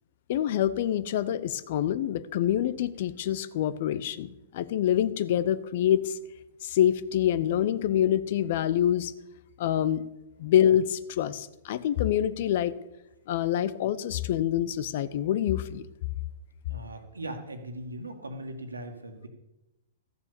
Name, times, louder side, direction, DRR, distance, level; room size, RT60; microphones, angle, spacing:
voice 1, 0.3-6.2 6.6-9.1 9.6-10.1 10.4-12.7 13.3-15.8, left 11 dB, 50° left, 15 dB, 0.8 m, -26 dB
voice 2, 16.7-19.3, right 1 dB, 80° right, 6 dB, 1.9 m, -39 dB
14.0 x 7.0 x 7.0 m, 0.94 s
figure-of-eight pair, 110°, 0 cm